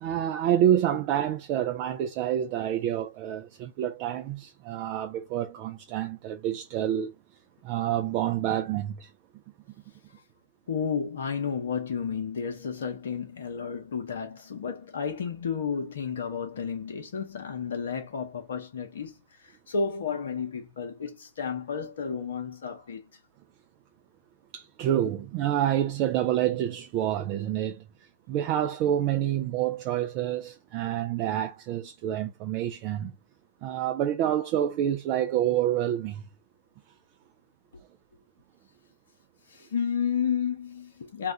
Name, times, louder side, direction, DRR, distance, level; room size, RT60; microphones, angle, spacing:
voice 1, 0.0-7.1 7.6-9.1 24.5-27.8 28.3-33.1 33.6-36.2, right 11 dB, 40° right, 0.4 m, -28 dB
voice 2, 10.7-23.2 39.5-41.3, left 6 dB, 65° left, 0.7 m, -32 dB
2.3 x 2.2 x 3.7 m
figure-of-eight pair, 110°, 0 cm